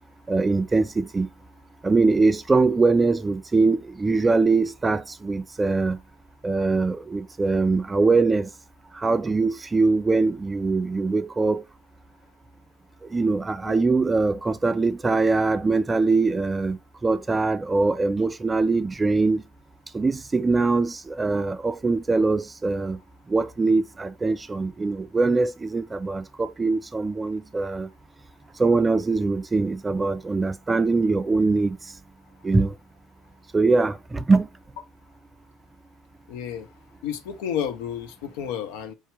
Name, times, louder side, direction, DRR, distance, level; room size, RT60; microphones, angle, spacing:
voice 1, 0.3-1.3 1.8-6.0 6.4-8.5 8.9-11.6 13.1-19.4 19.9-23.0 23.3-27.9 28.6-31.8 32.4-32.7 33.5-34.5, right 3 dB, 20° right, 0.4 m, -22 dB
voice 2, 36.3-36.7 37.0-38.9, left 9 dB, 65° left, 0.8 m, -31 dB
4.8 x 2.8 x 3.3 m
figure-of-eight pair, 65°, 0 cm